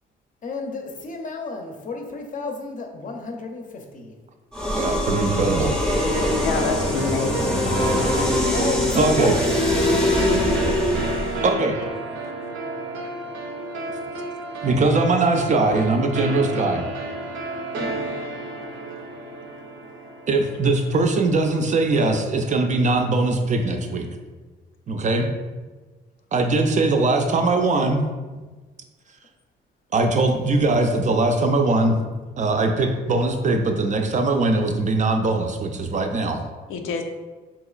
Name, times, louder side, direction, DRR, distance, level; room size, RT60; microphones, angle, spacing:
voice 1, 0.4-4.1 5.6-5.7 8.5-9.6 17.7-18.0, left 3 dB, 40° left, 3 dB, 0.6 m, -32 dB
sound 1, 4.5-11.5, left 1 dB, 5° left, 0.6 m, -22 dB
voice 2, 4.7-5.8 8.9-9.4 11.4-11.8 14.6-16.8 20.3-24.1 24.9-25.3 26.3-28.0 29.9-31.9 32.4-36.4, right 3 dB, 40° right, 5 dB, 0.4 m, -21 dB
sound 2, 5.9-21.2, right 2 dB, 85° right, 0.6 m, -32 dB
voice 3, 6.3-7.7 14.1-14.2 17.9-18.0 36.7-37.0, left 4 dB, 85° left, 4 dB, 0.5 m, -28 dB
3.8 x 2.9 x 2.3 m, 1.3 s
cardioid pair, 90°, 20 cm